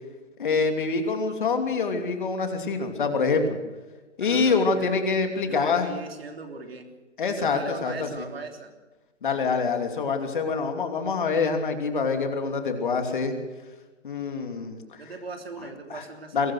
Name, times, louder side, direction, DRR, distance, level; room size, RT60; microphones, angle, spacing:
voice 1, 0.4-3.6 4.2-5.9 7.2-8.3 9.2-13.3 14.0-15.0 15.9-16.0 16.3-16.5, left 4 dB, 40° left, 6 dB, 3.0 m, -25 dB
voice 2, 4.2-5.0 5.5-6.9 7.4-8.7 15.0-16.5, right 4 dB, 50° right, 5 dB, 3.4 m, -39 dB
22.0 x 19.0 x 6.4 m, 1.2 s
figure-of-eight pair, 150°, 37 cm